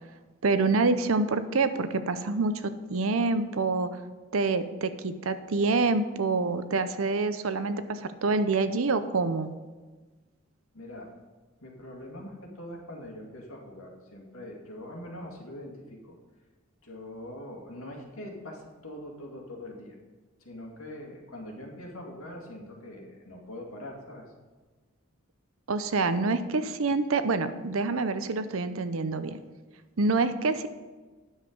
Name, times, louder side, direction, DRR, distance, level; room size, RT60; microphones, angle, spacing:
voice 1, 0.4-3.9 4.3-9.5 25.7-29.4 30.0-30.7, right 3 dB, 70° right, 11 dB, 0.7 m, -26 dB
voice 2, 10.7-11.1 11.6-16.2 16.8-20.0 20.4-24.3, left 1 dB, 80° left, 0 dB, 2.2 m, -43 dB
9.7 x 7.4 x 5.2 m, 1.3 s
head